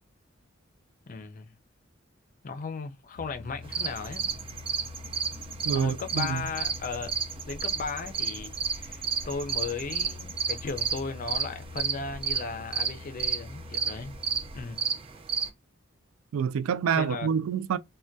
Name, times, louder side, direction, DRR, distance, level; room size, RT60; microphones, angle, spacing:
voice 1, 1.1-1.5 2.4-4.3 5.7-7.1 7.5-14.1 14.5-14.9 16.9-17.3, left 4 dB, 40° left, 0.5 m, -36 dB
sound 1, 3.1-14.6, left 3 dB, 65° right, 0.8 m, -45 dB
sound 2, 3.6-15.5, right 6 dB, 25° right, 0.5 m, -32 dB
voice 2, 5.7-6.4 16.3-17.8, right 7 dB, 90° right, 0.3 m, -27 dB
3.3 x 2.2 x 2.6 m
head